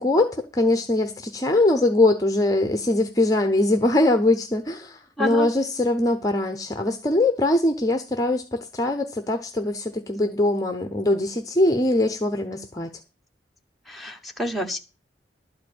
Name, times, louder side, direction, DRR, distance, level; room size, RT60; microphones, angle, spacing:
voice 1, 0.0-12.9, left 2 dB, 20° left, 0.7 m, -22 dB
voice 2, 5.2-5.5 13.9-14.8, equal, ahead, 1.1 m, -28 dB
12.0 x 4.8 x 8.6 m
head